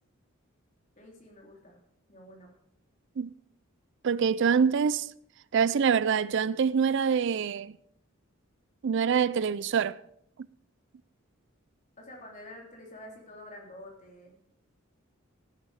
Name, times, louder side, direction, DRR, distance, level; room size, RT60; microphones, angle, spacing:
voice 1, 1.0-1.8 2.1-2.5 12.0-14.4, left 1 dB, 35° left, 3.4 m, -48 dB
voice 2, 4.0-5.1 5.5-7.7 8.8-10.0, right 6 dB, 60° right, 0.4 m, -25 dB
15.5 x 9.5 x 4.9 m
head